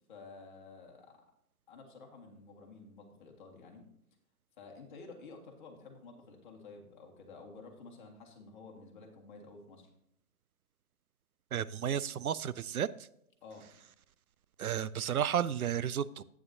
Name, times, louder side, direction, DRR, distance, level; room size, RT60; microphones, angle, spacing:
voice 1, 0.1-1.2 1.7-3.9 4.6-9.9 13.4-13.7, left 3 dB, 30° left, 1 dB, 1.7 m, -52 dB
voice 2, 11.5-12.9 14.6-16.2, right 9 dB, 70° right, 17 dB, 0.5 m, -32 dB
11.0 x 9.0 x 2.8 m, 0.74 s
figure-of-eight pair, 145°, 45 cm